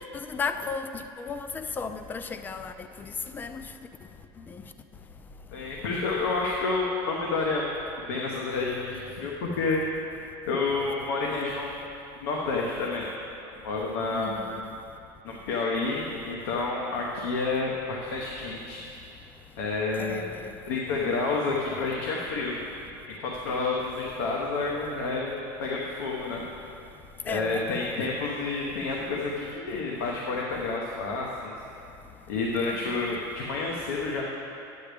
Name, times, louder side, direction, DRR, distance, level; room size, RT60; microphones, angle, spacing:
voice 1, 0.1-2.7 3.0-3.1 3.3-3.6 14.1-14.6 20.0-20.5 27.3-27.9 32.7-33.0, left 5 dB, 15° left, 9 dB, 0.4 m, -35 dB
voice 2, 5.5-7.7 8.1-9.8 10.5-11.7 12.2-13.1 13.4-14.5 15.2-18.8 19.6-20.3 20.7-22.6 23.2-25.3 25.6-26.4 27.2-31.5 32.3-34.2, left 3 dB, 85° left, -2 dB, 1.0 m, -29 dB
10.0 x 8.5 x 3.4 m, 2.7 s
supercardioid pair, 135°, 11 cm